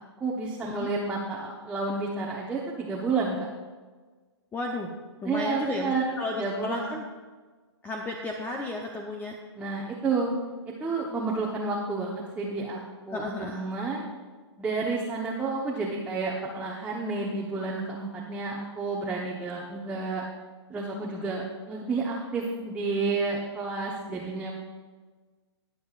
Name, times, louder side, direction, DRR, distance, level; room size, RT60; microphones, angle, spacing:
voice 1, 0.0-3.5 5.2-6.9 9.6-10.3 10.8-14.1 14.6-20.2 20.7-24.5, right 3 dB, 10° right, -4 dB, 1.1 m, -30 dB
voice 2, 4.5-4.9 5.2-7.1 7.8-9.3 13.1-13.6, left 2 dB, 15° left, 2 dB, 0.8 m, -33 dB
21.0 x 7.2 x 2.5 m, 1.4 s
hypercardioid pair, 135°, 15 cm